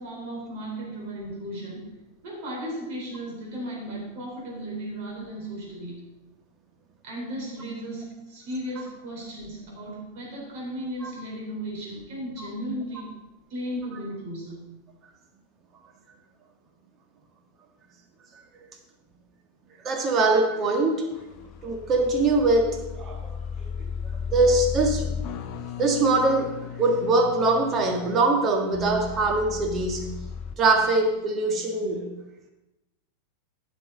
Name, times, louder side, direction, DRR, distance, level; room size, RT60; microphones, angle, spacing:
voice 1, 0.0-1.8 2.2-6.0 7.0-13.2 13.5-14.6, right 1 dB, 45° right, -2 dB, 4.4 m, -35 dB
voice 2, 19.8-21.1 21.6-23.3 24.3-25.0 25.8-26.5 26.8-30.1 30.6-32.1, right 2 dB, 30° right, 4 dB, 1.7 m, -22 dB
sound 1, 21.1-30.5, left 6 dB, 40° left, 0.9 m, -35 dB
15.5 x 6.2 x 4.0 m, 0.96 s
figure-of-eight pair, 90°, 0 cm